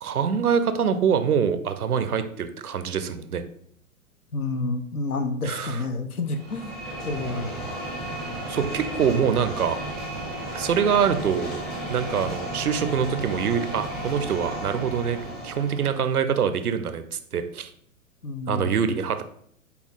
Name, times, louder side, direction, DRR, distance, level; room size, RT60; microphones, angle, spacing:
voice 1, 0.0-3.4 5.5-5.8 8.5-9.8 10.5-11.6 11.9-15.2 15.4-17.7 18.5-19.2, right 7 dB, 85° right, 10 dB, 0.6 m, -24 dB
voice 2, 4.3-6.8 7.0-7.6 18.2-18.8, left 3 dB, 80° left, 7 dB, 0.7 m, -29 dB
sound 1, 6.3-16.1, right 1 dB, ahead, 0.5 m, -34 dB
4.1 x 2.8 x 4.1 m, 0.64 s
figure-of-eight pair, 105°, 43 cm